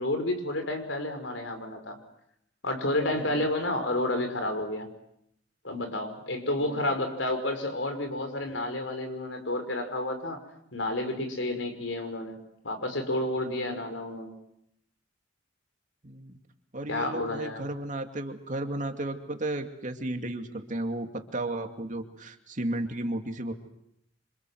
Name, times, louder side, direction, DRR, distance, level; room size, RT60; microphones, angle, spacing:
voice 1, 0.0-2.0 2.6-4.9 5.6-10.4 10.7-12.4 12.6-14.4 16.9-17.7, left 1 dB, 75° left, 6 dB, 5.6 m, -30 dB
voice 2, 16.0-16.4 16.7-23.5, right 1 dB, 40° right, 5 dB, 2.6 m, -34 dB
28.0 x 26.5 x 7.9 m, 0.76 s
head